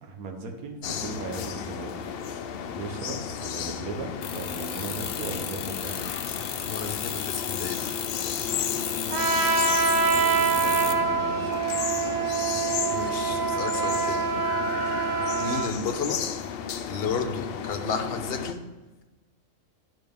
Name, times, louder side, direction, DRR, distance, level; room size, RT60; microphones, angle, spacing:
voice 1, 0.0-1.9 2.8-6.1 10.1-11.8, right 3 dB, 90° right, 3 dB, 1.5 m, -37 dB
sound 1, 0.8-18.5, left 7 dB, 65° left, 0.6 m, -33 dB
sound 2, 4.2-11.0, left 9 dB, 85° left, 1.1 m, -34 dB
voice 2, 6.6-7.9 12.9-14.3 15.4-16.2 16.9-18.6, left 5 dB, 50° left, 6 dB, 1.0 m, -32 dB
Trumpet, 9.1-15.7, right 5 dB, 55° right, 0.5 m, -25 dB
11.0 x 5.8 x 3.5 m, 1.2 s
omnidirectional pair, 1.5 m